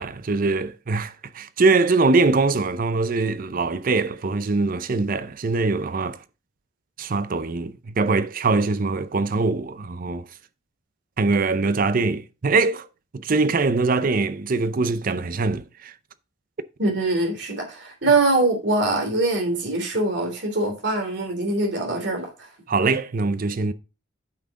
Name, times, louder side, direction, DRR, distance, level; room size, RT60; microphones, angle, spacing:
voice 1, 0.0-6.2 7.0-10.2 11.2-12.9 13.1-15.9 22.7-23.7, right 3 dB, 45° right, 0.5 m, -22 dB
voice 2, 16.8-22.3, right 2 dB, 65° right, 3.0 m, -23 dB
8.8 x 5.9 x 3.7 m
head